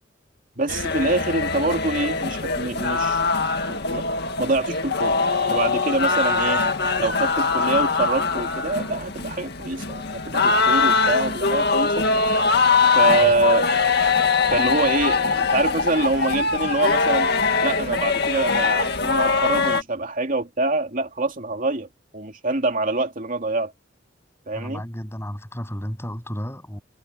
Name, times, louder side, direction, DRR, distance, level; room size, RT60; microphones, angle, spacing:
voice 1, 0.6-3.2 3.7-4.0 4.4-5.2 5.5-6.6 7.0-12.1 12.9-13.7 14.5-17.3 17.6-21.9 22.1-23.7 24.5-24.8, right 2 dB, 45° right, 2.8 m, -25 dB
sound 1, 0.7-19.8, left 4 dB, 60° left, 2.0 m, -22 dB
voice 2, 13.0-13.4 24.5-26.8, equal, 15° left, 7.7 m, -33 dB
head